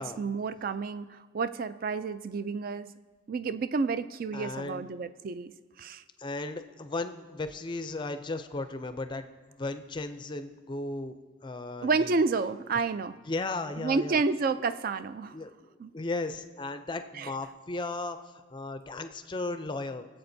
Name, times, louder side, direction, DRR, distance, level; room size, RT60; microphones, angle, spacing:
voice 1, 0.0-2.9 3.3-5.5 5.8-6.0 11.8-13.2 13.8-15.3 15.8-15.9 17.2-17.3, right 4 dB, 45° right, 13 dB, 0.3 m, -30 dB
voice 2, 4.3-4.9 6.2-11.2 11.4-12.2 13.3-14.2 15.3-20.1, left 2 dB, 25° left, 9 dB, 0.4 m, -36 dB
20.5 x 7.8 x 2.7 m, 1.4 s
head